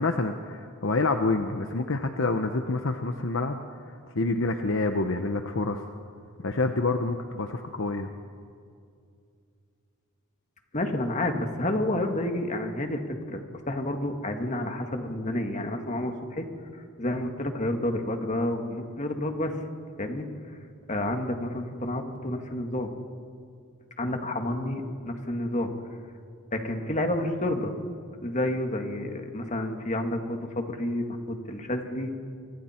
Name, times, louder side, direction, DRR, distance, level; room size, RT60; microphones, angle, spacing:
voice 1, 0.0-5.8 6.4-8.1, left 3 dB, 60° left, 6 dB, 0.9 m, -27 dB
voice 2, 10.7-13.0 13.3-16.4 16.7-19.6 20.0-20.3 20.9-22.9 24.0-25.7 26.5-27.7 28.2-32.2, left 1 dB, 35° left, 5 dB, 1.9 m, -30 dB
28.0 x 25.0 x 4.5 m, 2.4 s
head